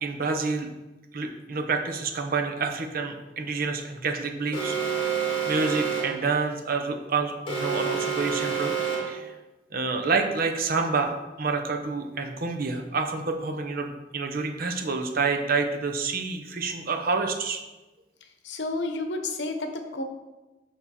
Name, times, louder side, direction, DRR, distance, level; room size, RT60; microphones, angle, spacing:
voice 1, 0.0-0.7 1.1-5.1 5.5-8.7 9.1-9.3 9.7-17.6, right 4 dB, 50° right, 5 dB, 0.8 m, -28 dB
Alarm, 4.5-6.3 7.5-9.3, right 6 dB, 30° left, 2.0 m, -28 dB
voice 2, 18.4-20.0, left 2 dB, 70° left, 5 dB, 0.9 m, -31 dB
7.0 x 5.7 x 4.2 m, 1.1 s
head